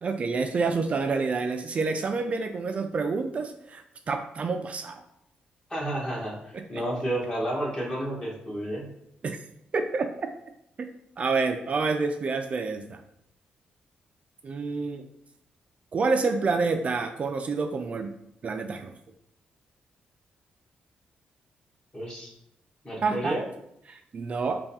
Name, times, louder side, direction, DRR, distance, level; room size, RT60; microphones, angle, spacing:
voice 1, 0.0-5.0 6.5-6.8 9.2-9.4 9.7-10.3 11.2-13.0 14.4-15.1 15.9-18.1 18.4-18.9 23.0-23.4 23.9-24.6, right 4 dB, 45° right, 6 dB, 0.3 m, -28 dB
voice 2, 5.7-8.9 21.9-22.3 22.8-23.4, right 1 dB, 25° left, -4 dB, 1.3 m, -31 dB
3.5 x 2.3 x 4.1 m, 0.77 s
cardioid pair, 100°, 3 cm